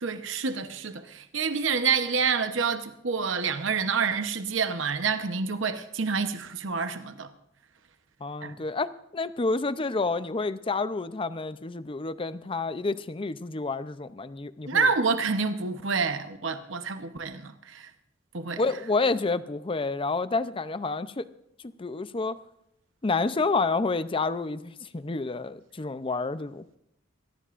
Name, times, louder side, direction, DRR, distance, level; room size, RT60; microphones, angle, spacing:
voice 1, 0.0-7.3 8.4-8.6 14.7-17.9 18.3-18.6, right 5 dB, 70° right, 0.9 m, -28 dB
voice 2, 8.2-14.9 18.6-21.3 21.8-22.4 23.0-26.6, left 3 dB, 25° left, 0.6 m, -29 dB
23.5 x 17.0 x 2.5 m
head